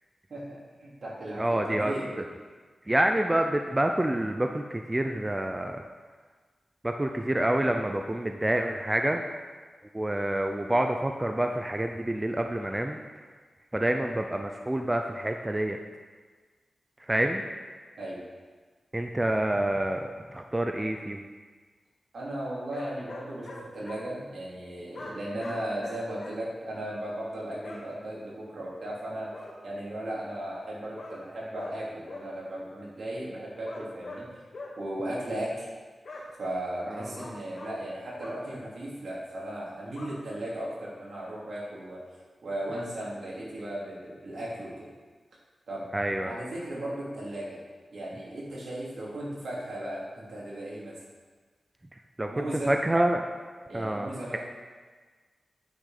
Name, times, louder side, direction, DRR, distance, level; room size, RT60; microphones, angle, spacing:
voice 1, 0.3-2.1 18.0-18.2 22.1-29.3 29.6-34.3 34.8-35.7 36.4-42.0 42.4-44.9 45.7-45.9 46.2-47.6 47.9-50.9 52.3-52.7 53.7-54.4, right 1 dB, 70° right, -6 dB, 3.4 m, -36 dB
voice 2, 1.4-1.9 2.9-5.8 6.8-9.2 9.9-13.0 13.7-15.8 17.1-17.4 18.9-21.2 36.9-37.1 45.9-46.3 52.2-53.3 53.7-54.4, right 1 dB, 15° right, 4 dB, 0.6 m, -27 dB
sound 1, 22.7-24.0 24.9-26.4 27.6-27.8 29.3-29.5 30.9-31.2 31.5-31.7 32.1-32.3 33.6-34.2 34.5-34.7 36.0-36.2 37.1-37.7 38.2-38.4 39.9-40.1, left 2 dB, 60° left, 2.0 m, -42 dB
9.3 x 6.1 x 6.7 m, 1.4 s
wide cardioid pair, 100°, 0 cm